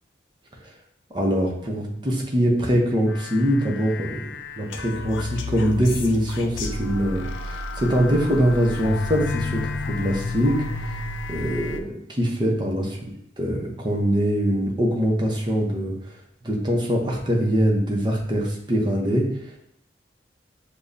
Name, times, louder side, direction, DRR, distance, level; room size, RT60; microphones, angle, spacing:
voice 1, 1.1-4.2 4.6-10.7 11.3-13.1 13.4-16.1 16.4-19.6, equal, 25° right, 0 dB, 0.8 m, -23 dB
sound 1, 3.1-11.8, left 3 dB, 90° left, 0.4 m, -32 dB
6.8 x 2.3 x 2.7 m, 0.77 s
head